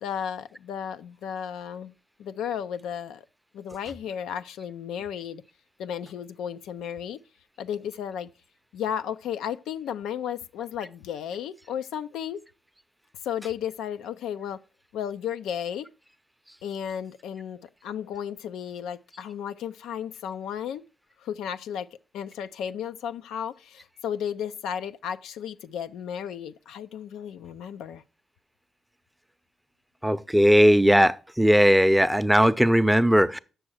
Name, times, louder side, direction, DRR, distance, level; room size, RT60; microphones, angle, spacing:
voice 1, 0.0-1.9 2.2-3.3 3.5-5.4 5.8-7.2 7.6-8.3 8.7-12.4 13.2-14.6 14.9-15.9 16.6-20.8 21.2-21.9 22.1-28.0, left 8 dB, 75° left, 0.4 m, -34 dB
voice 2, 30.0-33.4, equal, 5° right, 0.6 m, -18 dB
7.7 x 6.2 x 6.1 m
hypercardioid pair, 45°, 0 cm